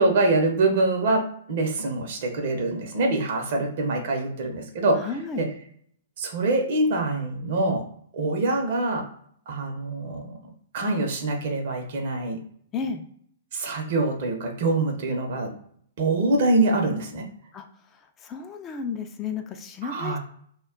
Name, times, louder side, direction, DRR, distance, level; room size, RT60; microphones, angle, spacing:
voice 1, 0.0-5.1 5.4-5.5 6.2-7.8 8.1-9.1 9.5-10.3 10.7-12.4 13.5-15.5 16.0-17.3 19.8-20.2, right 2 dB, 55° right, 3 dB, 0.7 m, -24 dB
voice 2, 5.0-5.5 12.7-13.0 17.5-17.6 18.2-20.2, left 5 dB, 25° left, 5 dB, 0.3 m, -32 dB
2.2 x 2.1 x 3.6 m, 0.64 s
figure-of-eight pair, 115°, 0 cm